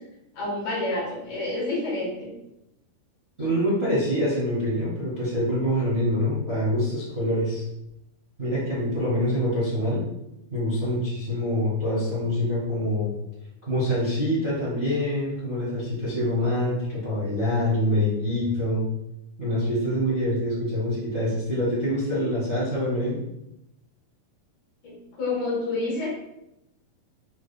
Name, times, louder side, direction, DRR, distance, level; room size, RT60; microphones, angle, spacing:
voice 1, 0.3-2.3 24.8-26.1, left 2 dB, 65° left, -5 dB, 2.9 m, -28 dB
voice 2, 3.4-7.6 8.4-10.0 10.5-13.2 13.7-18.9 19.4-23.2, left 1 dB, 75° right, -9 dB, 0.5 m, -25 dB
6.6 x 3.4 x 2.3 m, 0.85 s
omnidirectional pair, 4.2 m